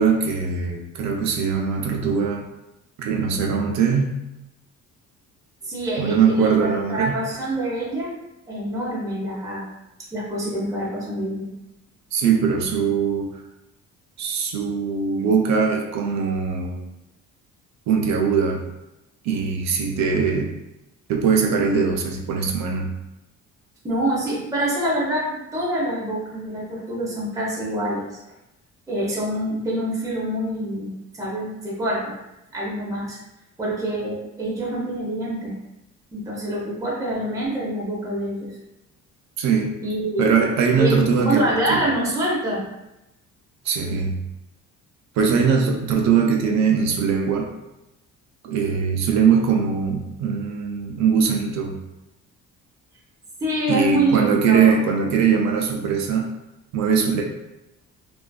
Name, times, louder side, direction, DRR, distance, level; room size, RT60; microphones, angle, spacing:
voice 1, 0.0-2.5 3.0-4.2 6.0-7.2 12.1-13.3 14.2-16.9 17.9-18.6 19.2-20.5 21.1-22.9 39.4-39.8 40.2-41.8 43.6-44.2 45.2-47.5 48.4-51.8 53.7-56.3 56.7-57.2, right 6 dB, 60° right, 1 dB, 0.4 m, -21 dB
voice 2, 5.6-8.1 8.5-9.7 10.1-11.5 23.8-28.0 28.9-32.1 32.5-33.2 33.6-35.5 36.1-38.5 39.8-40.2 40.8-41.0 41.2-42.6 53.4-54.8, right 1 dB, 10° right, -6 dB, 0.6 m, -26 dB
2.4 x 2.3 x 2.2 m, 0.93 s
cardioid pair, 135°, 31 cm